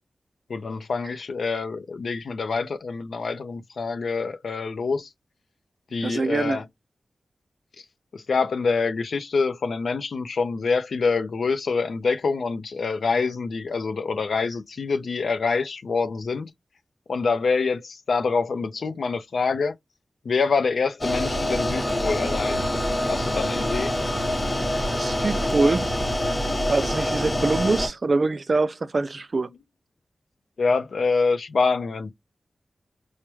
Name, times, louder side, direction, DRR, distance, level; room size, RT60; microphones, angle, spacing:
voice 1, 0.5-5.1 5.9-6.6 8.1-16.5 17.1-19.8 20.2-22.7 23.1-23.9 30.6-32.1, left 4 dB, 80° left, 0.5 m, -26 dB
voice 2, 6.0-6.6 24.9-25.9 26.2-26.4 26.7-29.5, right 3 dB, 50° right, 0.4 m, -24 dB
sound 1, 21.0-27.9, left 1 dB, 15° left, 0.9 m, -25 dB
4.7 x 2.1 x 3.0 m
wide cardioid pair, 85°, 0 cm